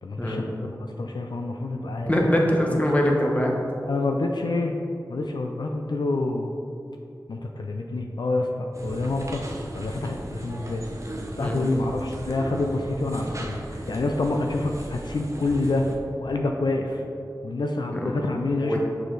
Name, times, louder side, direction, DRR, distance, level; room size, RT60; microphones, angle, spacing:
voice 1, 0.0-2.1 2.7-2.8 3.9-4.7 5.1-6.5 7.3-9.4 9.7-10.8 11.4-15.9 16.2-17.0 17.4-18.8, left 2 dB, 70° left, 3 dB, 0.4 m, -27 dB
voice 2, 2.1-3.6 11.4-11.6 17.9-18.1 18.6-18.8, equal, 20° left, -1 dB, 1.0 m, -23 dB
sound 1, 8.7-16.0, right 1 dB, 40° right, 0.9 m, -37 dB
6.5 x 5.0 x 3.9 m, 2.6 s
wide cardioid pair, 60°, 8 cm